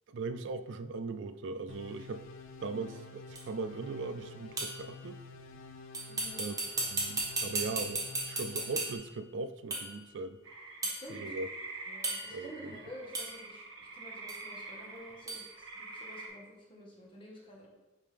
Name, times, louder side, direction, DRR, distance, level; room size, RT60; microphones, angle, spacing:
voice 1, 0.1-2.2 2.6-5.2 6.4-6.5 6.9-10.4 11.1-11.5 12.3-12.7, right 3 dB, 65° right, 12 dB, 0.3 m, -39 dB
sound 1, 1.7-9.0, left 4 dB, 80° left, 0.6 m, -50 dB
sound 2, 3.4-3.5 4.6-4.9 5.9-9.1 9.7-10.0 10.8-11.0 12.0-12.5 13.1-13.4 14.3-14.4 15.3-15.5, right 2 dB, 20° right, 1.1 m, -35 dB
voice 2, 6.1-6.4 10.8-11.3 11.9-17.7, equal, 25° left, -3 dB, 1.4 m, -50 dB
sound 3, 10.4-16.3, right 3 dB, 80° right, 1.2 m, -46 dB
9.9 x 3.7 x 3.4 m, 1.1 s
head